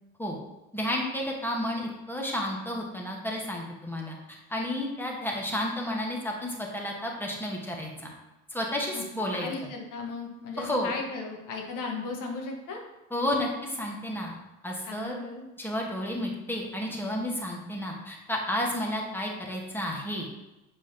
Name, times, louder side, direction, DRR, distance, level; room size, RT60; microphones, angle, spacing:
voice 1, 0.7-8.1 8.5-9.7 10.6-10.9 13.1-14.4 14.6-15.2 15.6-20.3, left 1 dB, 5° left, 0 dB, 1.4 m, -31 dB
voice 2, 9.3-12.8 14.9-15.4, left 3 dB, 45° left, 1 dB, 1.5 m, -36 dB
7.3 x 4.7 x 2.9 m, 1.0 s
hypercardioid pair, 75°, 43 cm